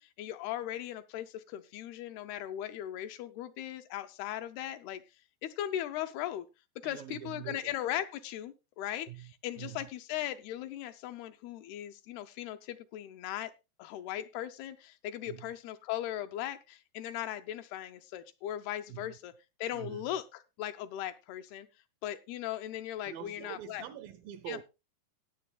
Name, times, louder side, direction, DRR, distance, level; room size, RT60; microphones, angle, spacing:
voice 1, 0.0-5.0 5.4-6.5 6.8-13.5 13.8-19.3 19.6-21.7 22.0-23.8 24.5-24.6, left 12 dB, 80° left, 2.6 m, -38 dB
voice 2, 6.8-7.8 9.1-9.9 15.3-15.5 18.9-19.2 19.7-20.1 23.0-24.6, right 11 dB, 80° right, 2.1 m, -45 dB
17.0 x 9.7 x 2.3 m
omnidirectional pair, 4.7 m